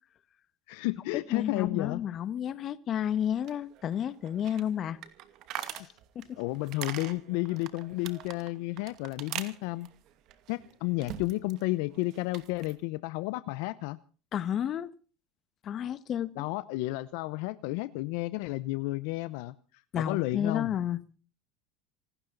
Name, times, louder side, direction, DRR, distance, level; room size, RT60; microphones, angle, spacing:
voice 1, 0.7-2.0 6.4-9.9 10.5-14.0 16.4-19.5 19.9-20.8, left 20 dB, 75° left, 0.9 m, -32 dB
voice 2, 1.3-5.0 5.5-5.9 6.1-6.4 14.3-14.9 15.6-16.4 19.9-21.0, left 9 dB, 45° left, 1.5 m, -31 dB
sound 1, 3.1-11.6 11.9-12.8, right 12 dB, 60° right, 2.4 m, -44 dB
26.5 x 13.0 x 4.0 m
supercardioid pair, 105°, 0 cm